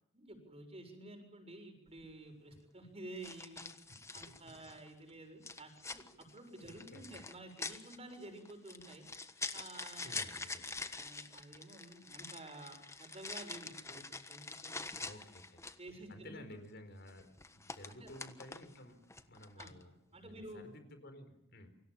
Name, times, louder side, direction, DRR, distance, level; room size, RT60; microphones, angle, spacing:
voice 1, 0.1-3.7 4.1-9.0 9.5-10.4 11.0-14.9 15.8-16.4 17.9-18.1 19.6-19.7 20.1-20.6, right 2 dB, 35° right, 6 dB, 7.0 m, -51 dB
sound 1, 1.9-2.1 3.2-4.9 5.4-15.9 17.1-18.8 19.1-19.8, left 3 dB, 15° left, 1.3 m, -46 dB
voice 2, 4.3-4.7 6.9-7.2 10.0-10.9 14.9-15.6 16.1-21.7, left 1 dB, 60° left, 8 dB, 4.6 m, -54 dB
29.0 x 25.0 x 7.4 m, 0.78 s
head